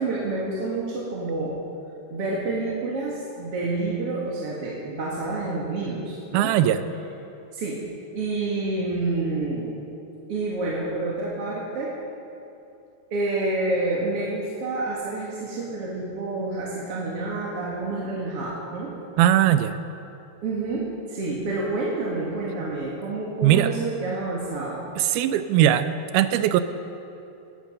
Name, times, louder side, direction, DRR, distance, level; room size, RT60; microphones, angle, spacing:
voice 1, 0.0-1.6 2.1-6.5 7.5-7.8 8.1-9.7 10.3-11.9 13.1-18.9 20.4-24.9, right 2 dB, 45° right, -5 dB, 2.3 m, -28 dB
voice 2, 6.3-6.8 19.2-19.8 23.4-23.7 25.0-25.9 26.1-26.6, right 12 dB, 85° right, 11 dB, 2.5 m, -19 dB
19.5 x 12.5 x 5.4 m, 2.7 s
omnidirectional pair, 4.2 m